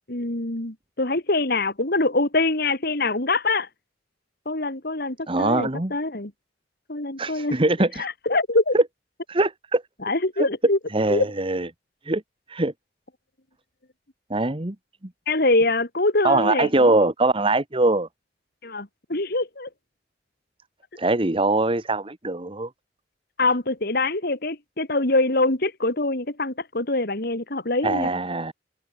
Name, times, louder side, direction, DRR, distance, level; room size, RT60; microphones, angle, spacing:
voice 1, 0.1-3.7 4.5-6.3 6.9-7.6 8.0-8.8 10.0-10.8 11.1-11.3 15.3-16.9 18.6-19.7 23.4-28.1, left 2 dB, 60° left, 2.9 m, -24 dB
voice 2, 5.3-5.9 7.2-8.1 8.7-8.8 9.3-9.8 10.4-10.5 10.9-11.7 12.0-12.2 12.5-12.7 14.3-14.7 16.2-18.1 21.0-22.7 27.8-28.5, right 2 dB, 30° right, 1.4 m, -22 dB
head